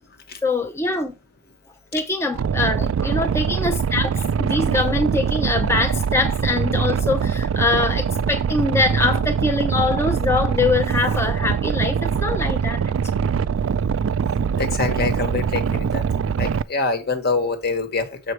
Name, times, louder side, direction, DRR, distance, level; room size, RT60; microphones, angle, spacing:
voice 1, 0.4-1.1 1.9-13.2, left 3 dB, 15° left, 0.6 m, -23 dB
Boat Water vehicle, 2.3-16.6, right 6 dB, 80° right, 0.3 m, -23 dB
voice 2, 14.6-16.0 16.4-18.3, left 3 dB, 50° left, 1.3 m, -25 dB
6.9 x 4.9 x 4.4 m
head